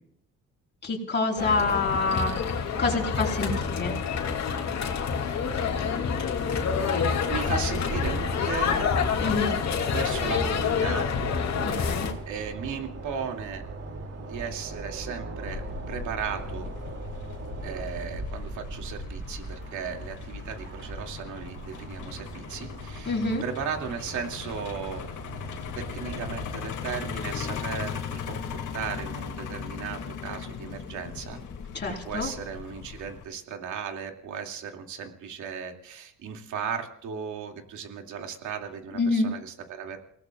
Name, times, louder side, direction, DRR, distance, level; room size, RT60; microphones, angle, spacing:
voice 1, 0.8-3.9 9.2-9.6 11.6-12.1 23.0-23.4 31.7-32.3 38.9-39.3, left 3 dB, 35° left, 0 dB, 4.8 m, -27 dB
sound 1, 1.4-12.1, left 6 dB, 65° left, 2.8 m, -27 dB
sound 2, 7.3-26.6, right 3 dB, 55° right, 2.8 m, -40 dB
voice 2, 7.3-8.8 9.9-11.1 12.3-13.6 14.1-16.7 17.6-25.0 25.7-31.4 32.0-40.0, right 6 dB, 80° right, 3 dB, 2.6 m, -36 dB
Truck, 15.5-33.2, left 7 dB, 80° left, 2.5 m, -38 dB
29.5 x 18.5 x 2.5 m, 0.72 s
cardioid pair, 90°, 30 cm